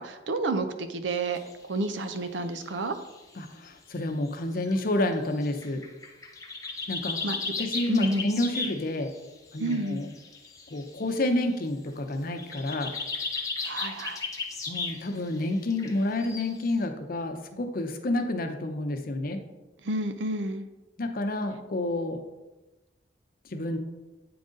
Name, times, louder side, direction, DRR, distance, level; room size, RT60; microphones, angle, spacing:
voice 1, 0.0-1.4 1.7-2.9 7.2-7.4 7.9-8.3 9.6-10.0 13.6-14.2 19.8-20.6, right 2 dB, 90° right, 9 dB, 0.6 m, -30 dB
sound 1, 1.3-1.5 1.8-2.2 2.7-3.2 3.7-3.8 4.7-4.8 5.1-9.2 9.5-11.2 12.1-16.7, left 4 dB, 20° left, 0.7 m, -35 dB
voice 2, 3.4-5.8 6.9-7.2 7.6-9.1 9.5-10.1 10.7-12.9 14.7-19.4 21.0-22.2 23.5-23.8, left 1 dB, 50° left, 6 dB, 0.7 m, -29 dB
8.5 x 3.9 x 3.7 m, 1.1 s
head